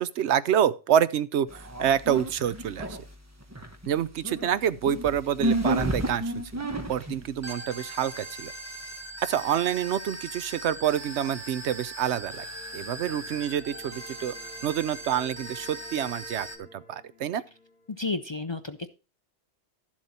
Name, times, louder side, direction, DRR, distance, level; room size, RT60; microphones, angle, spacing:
voice 1, 0.0-3.0 3.9-6.6 6.9-8.5 9.2-12.4 12.7-14.3 14.6-17.4, right 9 dB, 80° right, 1.0 m, -27 dB
sound 1, 1.5-3.1 3.4-16.6, right 1 dB, 15° right, 1.2 m, -35 dB
sound 2, 12.1-18.1, left 1 dB, 55° left, 2.7 m, -51 dB
voice 2, 18.0-18.9, left 3 dB, 35° left, 0.5 m, -31 dB
12.5 x 7.5 x 4.2 m
omnidirectional pair, 1.1 m